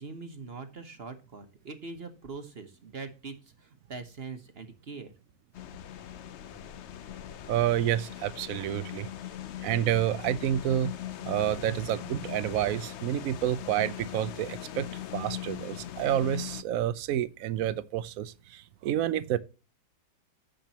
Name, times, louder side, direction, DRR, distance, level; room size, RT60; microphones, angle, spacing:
voice 1, 0.0-5.1, right 4 dB, 40° right, 1.1 m, -42 dB
sound 1, 5.5-16.6, left 11 dB, 80° left, 0.6 m, -40 dB
voice 2, 7.5-9.1 9.6-10.9 11.2-14.9 15.1-19.4, right 11 dB, 60° right, 0.9 m, -29 dB
14.5 x 5.1 x 2.9 m
omnidirectional pair, 1.9 m